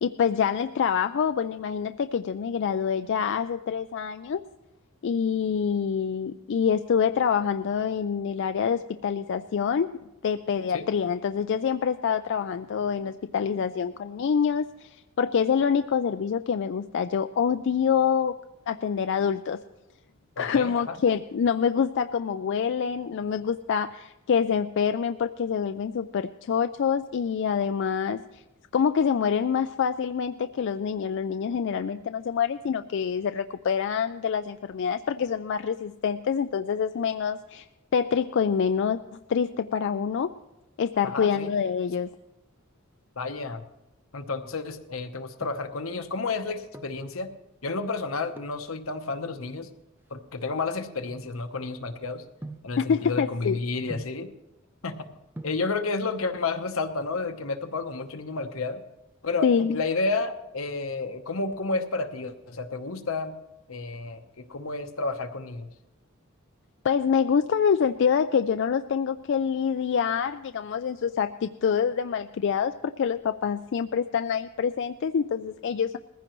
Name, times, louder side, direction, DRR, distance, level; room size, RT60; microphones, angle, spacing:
voice 1, 0.0-4.4 5.0-9.9 10.2-18.3 18.7-19.6 20.4-28.4 28.7-37.6 37.9-40.3 40.8-42.1 52.8-53.6 59.4-59.8 66.8-76.0, left 7 dB, 60° left, 9 dB, 0.4 m, -26 dB
voice 2, 20.4-20.9 41.0-41.5 43.2-43.6 44.1-47.3 47.6-49.7 50.1-52.2 52.6-54.3 54.8-55.1 55.4-58.8 59.2-63.3 63.7-65.7, left 3 dB, 80° left, 7 dB, 1.0 m, -31 dB
sound 1, 45.3-45.8 46.5-47.1 48.3-48.7 49.4-51.8 52.4-52.8 53.9-54.3 55.1-55.2 55.4-55.7 56.8-57.4 57.7-57.8 58.0-58.1 58.5-58.9 59.2-60.2 60.7-61.1 61.5-62.6 62.9-63.0, right 2 dB, 10° right, 0.5 m, -45 dB
20.5 x 15.0 x 3.1 m, 0.97 s
head